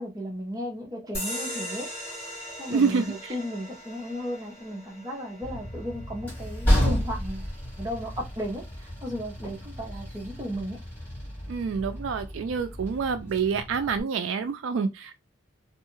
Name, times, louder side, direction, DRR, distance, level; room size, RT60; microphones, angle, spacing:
voice 1, 0.0-2.2 2.6-7.5 7.8-10.8, equal, 15° right, 0.8 m, -35 dB
sound 1, 1.1-8.2, equal, 30° left, 1.8 m, -40 dB
voice 2, 2.7-3.3 11.5-15.2, right 5 dB, 70° right, 0.3 m, -27 dB
Train, 5.4-14.0, equal, 10° left, 1.2 m, -31 dB
2.7 x 2.3 x 2.9 m
head